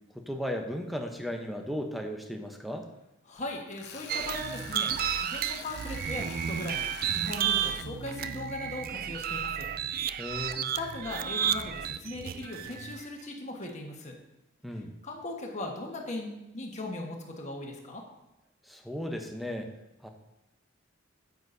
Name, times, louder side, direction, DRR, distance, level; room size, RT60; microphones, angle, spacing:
voice 1, 0.1-2.9 10.2-10.7 14.6-14.9 18.7-19.7 20.0-20.1, equal, ahead, 3 dB, 0.8 m, -35 dB
voice 2, 3.2-6.9 7.1-9.7 10.8-14.2 15.0-18.0, left 2 dB, 35° left, 0 dB, 1.3 m, -38 dB
Tools, 3.7-7.8, left 5 dB, 55° left, 0.8 m, -45 dB
sound 1, 4.1-13.0, right 9 dB, 45° right, 0.3 m, -32 dB
9.4 x 8.2 x 2.7 m, 0.95 s
head